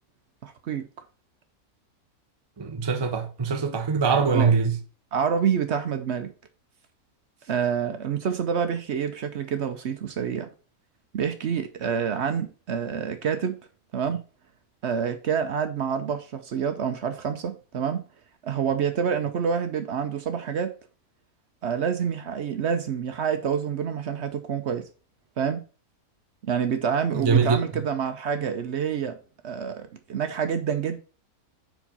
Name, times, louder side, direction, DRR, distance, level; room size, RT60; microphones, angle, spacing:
voice 1, 0.4-0.9 4.3-4.5 5.1-6.3 7.5-10.5 11.1-13.6 13.9-14.2 14.8-18.0 18.4-20.7 21.6-24.8 25.4-25.6 26.4-29.2 29.4-31.0, right 7 dB, 60° right, 0.8 m, -27 dB
voice 2, 2.6-4.8 27.1-27.6, right 5 dB, 35° right, 0.4 m, -22 dB
4.8 x 4.5 x 5.4 m
omnidirectional pair, 1.6 m